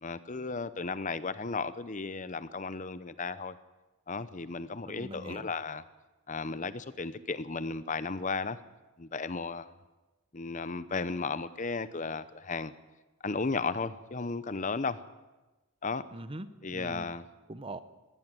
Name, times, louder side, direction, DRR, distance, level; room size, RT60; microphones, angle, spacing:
voice 1, 0.0-3.5 4.1-5.8 6.3-8.6 9.0-9.7 10.3-12.7 13.2-15.0 15.8-16.0 16.6-17.2, left 4 dB, 35° left, 15 dB, 0.7 m, -34 dB
voice 2, 4.8-5.5 16.1-17.1 17.5-17.8, right 1 dB, 25° right, 13 dB, 0.9 m, -42 dB
20.0 x 16.0 x 9.1 m, 1.1 s
head